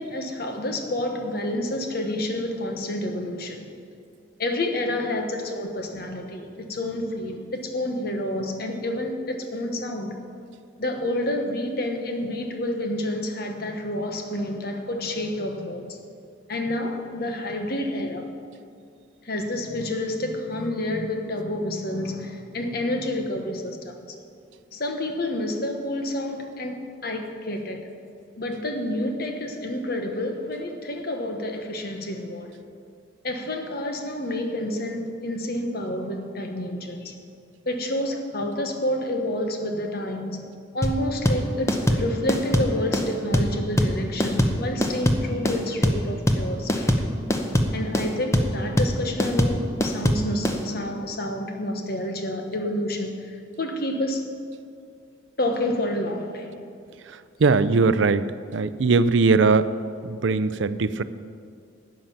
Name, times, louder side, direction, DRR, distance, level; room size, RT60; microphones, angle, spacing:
voice 1, 0.0-3.7 4.4-10.2 10.8-15.9 16.5-18.2 19.2-23.9 24.7-26.8 27.0-27.8 28.4-32.5 33.2-37.1 37.7-40.4 40.7-47.0 47.7-54.2 55.4-56.6, left 1 dB, 50° left, 4 dB, 1.3 m, -29 dB
sound 1, 40.8-50.6, equal, 15° left, 0.8 m, -22 dB
voice 2, 57.1-58.3 58.5-59.7 60.0-61.0, right 4 dB, 70° right, 14 dB, 0.5 m, -20 dB
13.0 x 9.0 x 5.8 m, 2.4 s
head